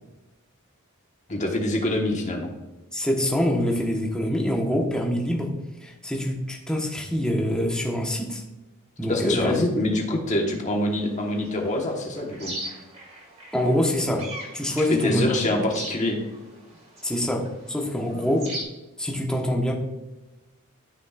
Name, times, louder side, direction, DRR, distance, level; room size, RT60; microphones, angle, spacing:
voice 1, 1.3-2.5 9.1-12.5 14.9-16.2, left 1 dB, 35° left, 1 dB, 1.4 m, -25 dB
voice 2, 2.9-5.5 5.8-8.4 9.0-9.9 13.5-14.3 14.5-15.6 17.0-18.5 19.0-19.7, left 1 dB, 5° left, -1 dB, 1.2 m, -25 dB
sound 1, 10.8-18.6, right 1 dB, 30° right, 2.3 m, -41 dB
13.0 x 6.3 x 2.5 m, 1.0 s
head